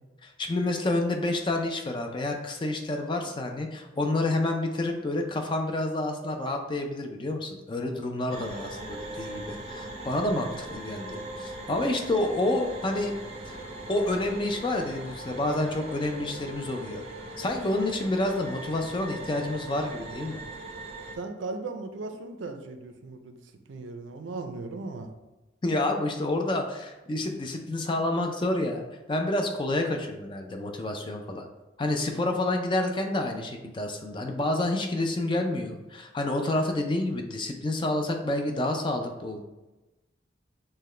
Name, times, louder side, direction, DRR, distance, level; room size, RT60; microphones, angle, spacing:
voice 1, 0.2-13.1 13.5-13.6 13.9-17.0 17.4-20.4 25.6-31.5 31.8-39.4, left 2 dB, 25° left, 3 dB, 0.4 m, -29 dB
sound 1, 8.3-21.1, right 1 dB, 35° right, 0.5 m, -40 dB
voice 2, 21.1-23.4 23.7-25.1, right 3 dB, 90° right, 7 dB, 0.5 m, -37 dB
5.6 x 2.2 x 3.2 m, 1.1 s
head